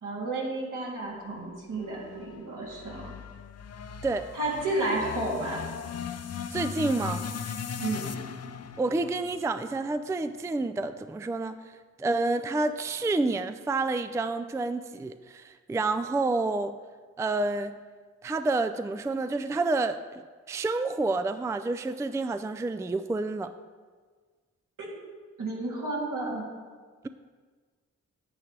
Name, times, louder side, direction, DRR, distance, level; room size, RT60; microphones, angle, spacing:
voice 1, 0.0-3.1 4.3-5.6 7.8-8.1 24.8-24.9 25.4-26.4, right 2 dB, 70° right, -5 dB, 2.7 m, -32 dB
sound 1, 1.8-10.2, left 7 dB, 50° left, 0.6 m, -38 dB
voice 2, 6.5-7.3 8.8-16.8 17.2-17.8 18.2-20.2 20.5-23.5, right 3 dB, 10° right, 10 dB, 0.3 m, -29 dB
9.7 x 8.6 x 3.3 m, 1.5 s
cardioid pair, 55°, 32 cm